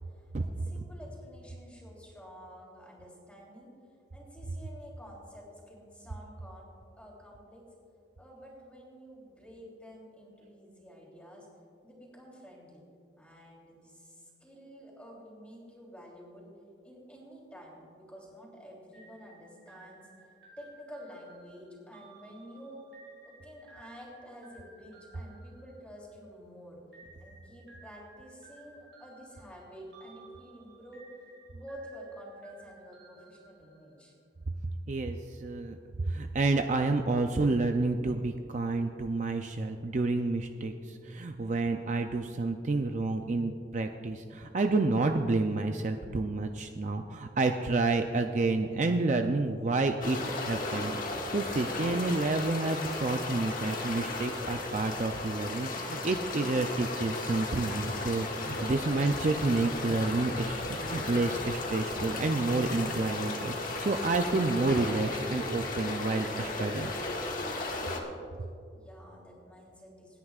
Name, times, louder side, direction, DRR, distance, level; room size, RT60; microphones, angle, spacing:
voice 1, 0.2-3.7 4.1-7.6 8.2-11.5 11.8-12.8 13.2-16.5 16.8-20.3 20.6-22.8 23.2-26.8 27.2-34.1 68.7-70.2, equal, 5° left, -4 dB, 3.2 m, -50 dB
sound 1, 18.9-26.4 26.9-34.2, right 3 dB, 70° right, 3.7 m, -57 dB
voice 2, 34.9-50.2 50.5-66.9, right 3 dB, 40° right, 5 dB, 0.4 m, -29 dB
sound 2, 50.0-68.0, left 2 dB, 45° left, 1.3 m, -35 dB
27.5 x 9.7 x 2.4 m, 2.4 s
head